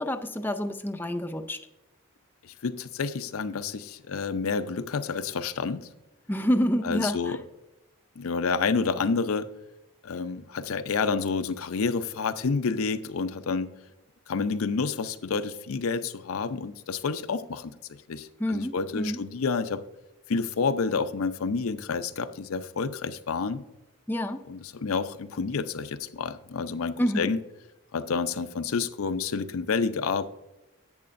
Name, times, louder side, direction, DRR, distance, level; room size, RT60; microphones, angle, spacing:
voice 1, 0.0-1.6 6.3-7.4 18.4-19.2 24.1-24.4 27.0-27.3, equal, 10° left, 7 dB, 0.4 m, -28 dB
voice 2, 2.4-5.9 6.8-7.4 8.2-9.5 10.0-13.7 14.3-17.7 18.1-19.8 20.3-23.6 24.5-27.4 27.9-30.2, left 5 dB, 90° left, 10 dB, 0.5 m, -29 dB
11.0 x 8.5 x 2.5 m, 0.96 s
head